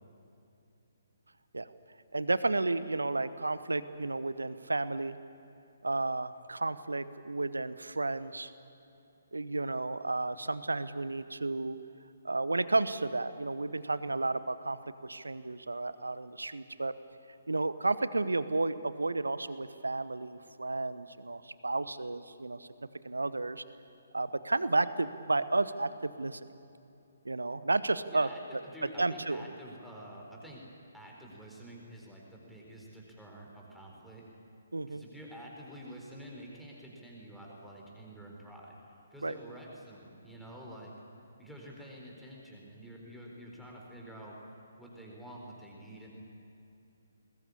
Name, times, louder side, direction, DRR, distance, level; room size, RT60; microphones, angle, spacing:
voice 1, 2.1-5.2 5.8-8.5 9.3-11.8 12.2-16.9 17.5-22.7 23.0-23.6 24.1-26.4 27.2-28.6 29.0-29.5 34.7-35.0 39.2-39.3, right 2 dB, 70° right, 14 dB, 0.9 m, -32 dB
voice 2, 28.1-30.6 30.9-34.3 34.9-38.8 39.1-40.9 41.4-44.4 44.8-46.1, equal, ahead, -3 dB, 4.0 m, -48 dB
21.0 x 20.5 x 8.5 m, 2.7 s
figure-of-eight pair, 135°, 0 cm